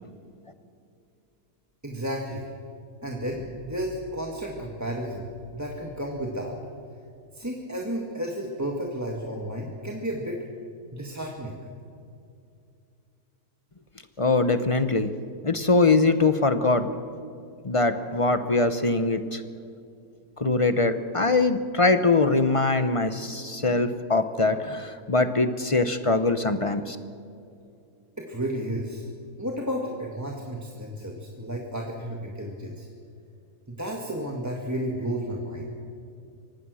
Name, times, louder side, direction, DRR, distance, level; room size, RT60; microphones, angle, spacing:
voice 1, 1.8-2.5 3.0-6.6 7.3-10.4 10.9-11.6 28.2-29.0 29.4-32.9 33.7-35.7, equal, 10° right, -1 dB, 1.7 m, -32 dB
voice 2, 14.2-15.1 15.4-16.9 17.6-19.4 20.4-27.0, left 3 dB, 30° left, 10 dB, 0.6 m, -22 dB
24.0 x 18.5 x 6.4 m, 2.5 s
omnidirectional pair, 1.7 m